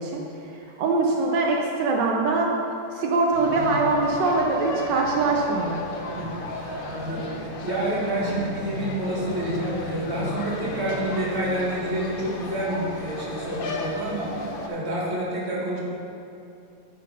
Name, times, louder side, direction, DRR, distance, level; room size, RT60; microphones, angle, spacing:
voice 1, 0.0-2.5 2.9-5.8, right 3 dB, 80° right, -1 dB, 1.4 m, -23 dB
sound 1, 3.3-14.7, left 1 dB, 55° left, 0.6 m, -34 dB
voice 2, 6.1-15.8, right 1 dB, 40° right, -5 dB, 1.9 m, -29 dB
9.8 x 4.0 x 5.4 m, 2.8 s
omnidirectional pair, 1.9 m